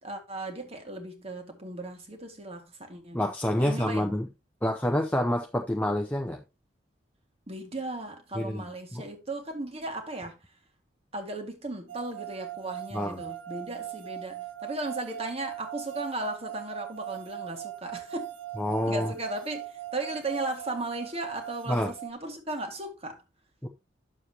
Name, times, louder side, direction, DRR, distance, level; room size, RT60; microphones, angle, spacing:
voice 1, 0.0-3.2 3.6-4.1 7.5-10.4 11.1-18.3 18.9-23.2, right 2 dB, 35° right, 1.8 m, -36 dB
voice 2, 3.1-4.3 4.6-6.4 8.3-8.6 8.9-9.1 12.9-13.2 18.6-19.1 21.7-21.9 23.6-23.7, left 1 dB, 10° left, 0.6 m, -28 dB
sound 1, 11.9-22.1, right 13 dB, 80° right, 0.6 m, -40 dB
9.7 x 7.0 x 2.9 m
head